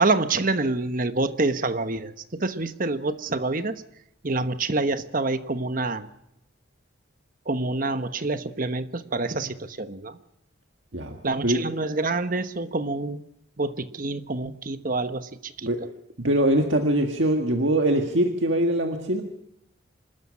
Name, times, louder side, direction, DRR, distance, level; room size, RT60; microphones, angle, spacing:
voice 1, 0.0-3.8 4.2-6.1 7.4-10.2 11.2-13.2 13.6-15.7, right 3 dB, 45° right, 10 dB, 1.1 m, -27 dB
voice 2, 16.2-19.2, right 1 dB, 70° right, 3 dB, 1.8 m, -22 dB
26.0 x 13.0 x 9.7 m, 0.81 s
head